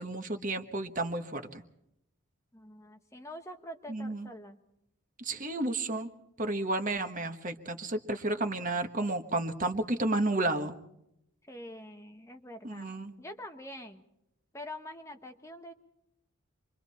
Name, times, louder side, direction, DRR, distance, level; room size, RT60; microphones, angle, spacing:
voice 1, 0.0-1.6 3.9-4.3 5.2-6.1 6.4-10.8 12.6-13.1, right 2 dB, 35° right, 7 dB, 1.4 m, -32 dB
voice 2, 2.5-4.6 11.5-12.9 13.2-14.0 14.5-15.7, left 1 dB, 15° left, 6 dB, 1.0 m, -45 dB
27.5 x 23.5 x 4.3 m, 0.79 s
head